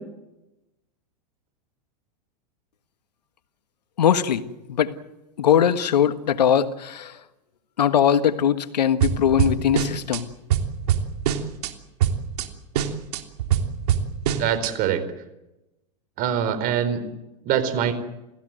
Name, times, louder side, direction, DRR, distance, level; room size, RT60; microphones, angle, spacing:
voice 1, 4.0-4.9 5.4-7.2 7.8-10.3, left 9 dB, 85° left, 10 dB, 1.5 m, -21 dB
sound 1, 9.0-10.2 10.5-11.7 12.0-12.5 12.7-14.7, right 9 dB, 70° right, 3.2 m, -23 dB
voice 2, 14.3-15.0 16.2-17.0 17.5-17.9, right 9 dB, 45° right, 10 dB, 4.4 m, -23 dB
29.5 x 16.0 x 7.8 m, 0.96 s
hypercardioid pair, 110°, 21 cm